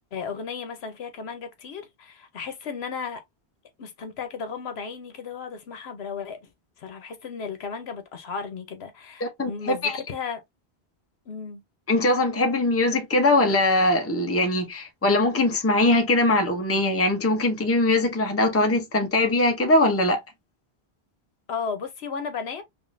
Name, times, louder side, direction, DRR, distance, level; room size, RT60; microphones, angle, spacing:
voice 1, 0.1-3.2 3.8-6.5 6.8-10.4 11.3-11.6 21.5-22.6, left 6 dB, 75° left, 1.0 m, -34 dB
voice 2, 9.2-10.0 11.9-20.2, left 2 dB, 15° left, 0.7 m, -21 dB
3.5 x 3.0 x 2.5 m
omnidirectional pair, 1.1 m